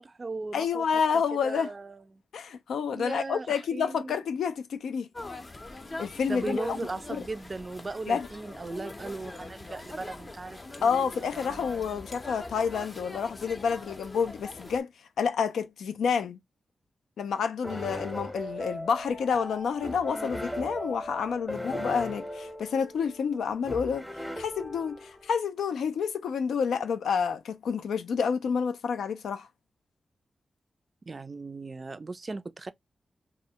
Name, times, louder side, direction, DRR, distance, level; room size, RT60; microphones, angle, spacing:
voice 1, 0.0-0.9 1.4-2.2 2.9-4.2 6.3-12.0 31.1-32.7, right 3 dB, 45° right, 0.3 m, -38 dB
voice 2, 0.5-1.7 2.3-5.1 6.0-6.8 7.1-7.2 8.1-8.3 10.8-14.9 15.2-16.4 17.2-24.1 24.4-29.5, left 6 dB, 90° left, 0.3 m, -29 dB
sound 1, 5.1-14.8, left 2 dB, 35° left, 0.5 m, -42 dB
sound 2, 17.6-25.3, equal, ahead, 0.7 m, -37 dB
2.3 x 2.0 x 2.7 m
cardioid pair, 50°, 0 cm